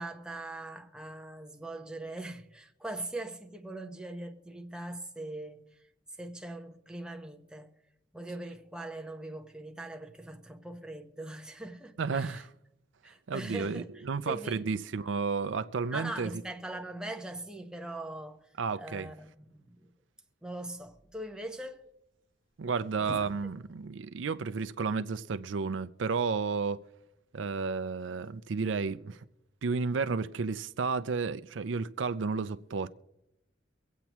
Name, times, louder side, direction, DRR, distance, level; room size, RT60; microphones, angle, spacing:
voice 1, 0.0-5.8 6.2-7.7 8.1-12.4 13.0-13.9 14.2-14.6 15.9-18.4 18.7-19.9 20.4-21.8 23.0-23.1, right 2 dB, 5° right, 0.9 m, -41 dB
voice 2, 12.0-12.5 13.3-16.3 18.6-19.1 22.6-26.8 27.3-29.3 29.6-32.9, right 5 dB, 75° right, 0.5 m, -32 dB
sound 1, 20.8-28.3, equal, 50° left, 3.9 m, -53 dB
24.5 x 8.2 x 3.0 m
head